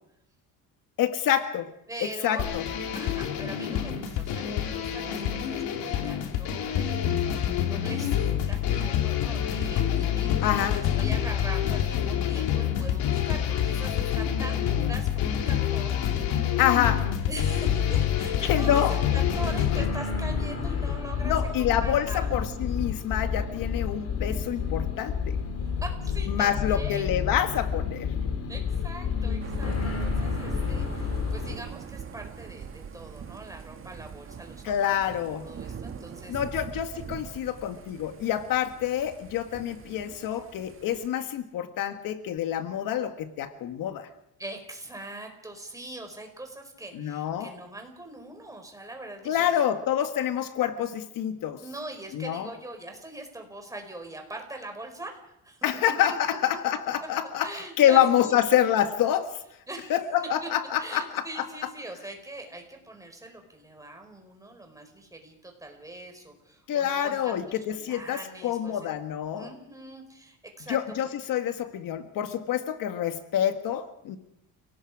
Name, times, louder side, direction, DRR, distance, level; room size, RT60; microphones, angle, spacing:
voice 1, 1.0-1.7 2.0-2.6 10.4-10.8 16.6-17.0 18.4-18.9 21.2-25.4 26.3-28.1 34.6-35.5 36.3-44.1 46.9-47.5 49.2-51.6 52.1-52.5 55.6-57.5 57.8-59.3 59.9-61.5 66.7-69.5 70.7-74.2, left 10 dB, 65° left, 8 dB, 1.7 m, -27 dB
voice 2, 1.9-2.5 2.9-16.0 16.4-16.5 17.3-22.3 25.8-27.1 28.5-35.0 35.4-36.5 44.4-49.6 51.6-56.6 57.4-58.4 59.7-59.9 60.4-60.5 60.8-68.8 69.3-70.8, right 2 dB, 10° right, 4 dB, 4.8 m, -42 dB
sound 1, 2.4-19.8, left 10 dB, 85° left, 3.1 m, -27 dB
sound 2, 19.0-31.6, left 6 dB, 45° left, 3.8 m, -30 dB
Thunder / Rain, 29.4-41.1, right 7 dB, 35° right, 1.9 m, -42 dB
29.5 x 18.5 x 4.9 m, 0.81 s
cardioid pair, 130°, 36 cm